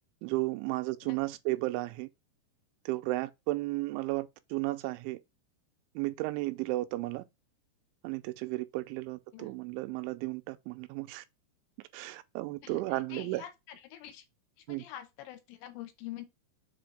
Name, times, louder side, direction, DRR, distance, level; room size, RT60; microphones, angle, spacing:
voice 1, 0.2-2.1 2.9-5.2 6.0-7.2 8.0-11.2 11.9-13.5 14.7-14.8, right 19 dB, 85° right, 2.9 m, -34 dB
voice 2, 12.6-14.2 14.7-16.3, left 13 dB, 80° left, 2.9 m, -46 dB
6.8 x 2.7 x 5.1 m
omnidirectional pair, 5.4 m